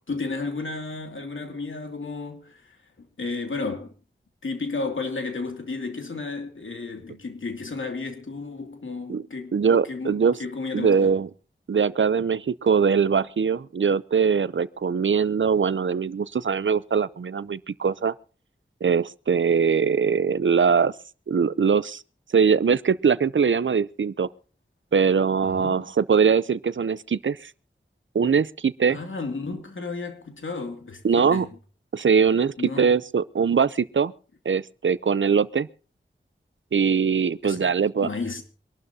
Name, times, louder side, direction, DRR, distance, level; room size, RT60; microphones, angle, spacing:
voice 1, 0.1-3.9 4.4-11.1 25.4-25.9 28.9-31.5 32.6-32.9 37.4-37.7 38.0-38.4, left 3 dB, 90° left, 2.7 m, -33 dB
voice 2, 9.5-10.4 10.7-11.3 11.7-18.1 18.8-20.9 21.3-22.0 22.3-24.3 24.9-27.5 28.1-29.0 31.0-31.5 31.9-34.1 34.5-35.7 36.7-38.1, right 6 dB, 75° right, 0.6 m, -22 dB
25.0 x 12.5 x 2.8 m
wide cardioid pair, 45°, 20 cm